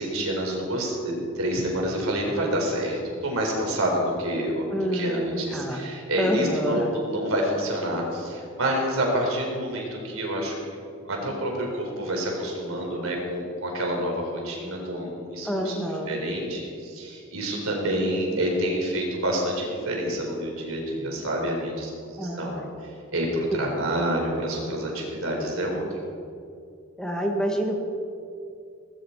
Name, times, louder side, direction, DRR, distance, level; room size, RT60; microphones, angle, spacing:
voice 1, 0.0-10.8 11.1-15.7 16.1-26.1, right 1 dB, 70° right, 0 dB, 4.6 m, -28 dB
voice 2, 4.7-5.8 6.2-6.9 15.4-16.1 22.2-22.7 27.0-27.8, equal, 5° left, 0 dB, 1.7 m, -27 dB
19.0 x 16.0 x 4.8 m, 2.4 s
head